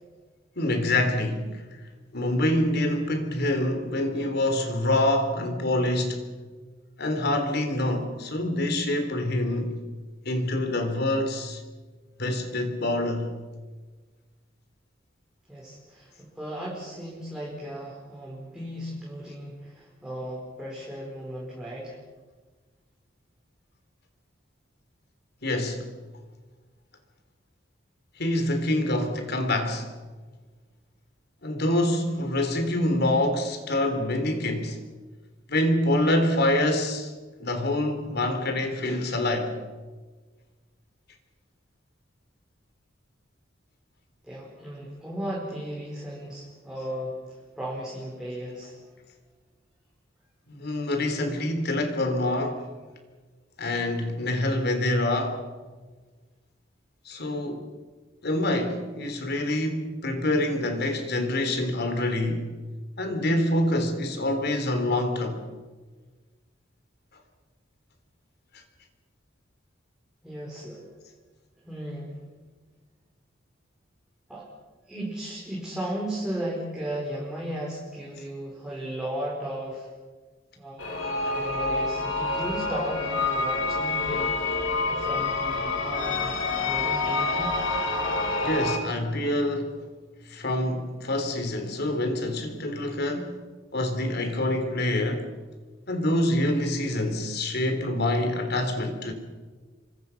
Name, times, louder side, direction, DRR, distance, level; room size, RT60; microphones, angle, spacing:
voice 1, 0.6-1.8 2.1-6.4 7.0-9.8 10.3-11.6 12.2-13.3 25.4-25.9 28.2-29.9 31.4-34.8 35.5-37.1 37.4-39.5 50.5-52.7 53.6-55.5 57.1-57.6 58.2-62.5 63.0-65.4 88.4-89.7 90.3-93.4 93.7-95.3 95.9-99.1, left 1 dB, 60° left, 3.7 m, -26 dB
voice 2, 15.5-22.0 44.2-48.8 70.2-70.9 71.6-72.2 74.3-74.5 74.9-79.9 80.6-86.4 86.6-87.5, right 1 dB, 5° right, 4.9 m, -36 dB
sound 1, 80.8-88.8, left 3 dB, 80° left, 3.3 m, -27 dB
27.5 x 24.0 x 6.0 m
head